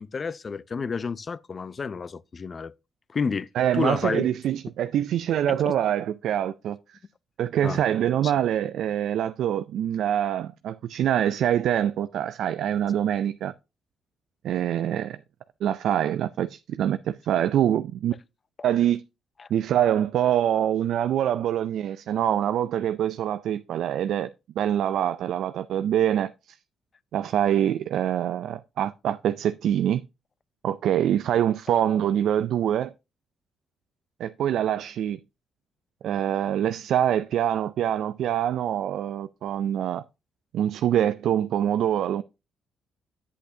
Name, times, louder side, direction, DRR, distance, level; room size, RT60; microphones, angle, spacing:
voice 1, 0.0-2.7 3.1-3.5 3.7-4.3 7.6-7.8 8.2-8.3, left 5 dB, 40° left, 0.4 m, -30 dB
voice 2, 3.6-6.8 7.4-13.5 14.4-15.2 15.6-18.1 18.6-19.0 19.5-24.3 24.6-26.6 27.1-30.0 30.6-32.9 34.2-35.2 36.0-40.0 40.5-42.2, right 10 dB, 75° right, 0.3 m, -25 dB
8.4 x 8.0 x 2.7 m
cardioid pair, 90°, 0 cm